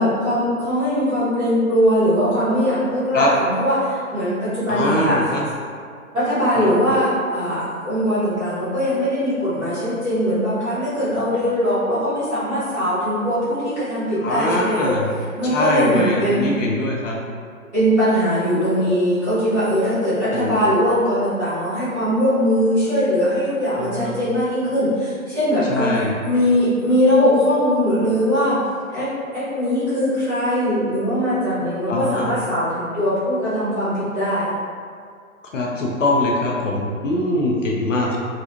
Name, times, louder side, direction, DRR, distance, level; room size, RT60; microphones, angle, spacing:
voice 1, 0.0-5.2 6.1-16.4 17.7-26.0 26.2-28.6 28.9-29.1 29.3-34.5, equal, ahead, -25 dB, 0.4 m, -20 dB
voice 2, 4.7-5.4 6.6-6.7 14.2-15.1 15.5-17.2 20.3-20.5 23.8-24.1 25.7-26.1 31.9-32.3 35.5-38.2, left 2 dB, 60° left, -2 dB, 0.6 m, -22 dB
3.7 x 2.3 x 2.9 m, 2.1 s
figure-of-eight pair, 135°, 43 cm